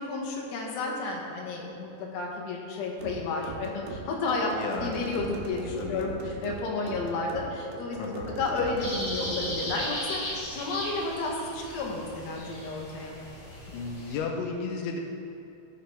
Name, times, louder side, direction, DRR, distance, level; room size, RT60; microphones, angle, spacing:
voice 1, 0.0-4.5 4.8-8.0 8.4-10.2 10.5-13.2, left 3 dB, 70° left, -1 dB, 3.1 m, -32 dB
sound 1, 3.0-9.8, right 5 dB, 75° right, 2.5 m, -39 dB
voice 2, 4.5-5.1 5.8-6.1 8.0-8.3 13.7-15.0, left 4 dB, 90° left, 2 dB, 3.1 m, -34 dB
sound 2, 8.8-14.2, equal, 50° left, 3.3 m, -37 dB
15.5 x 5.7 x 3.3 m, 2.8 s
omnidirectional pair, 5.3 m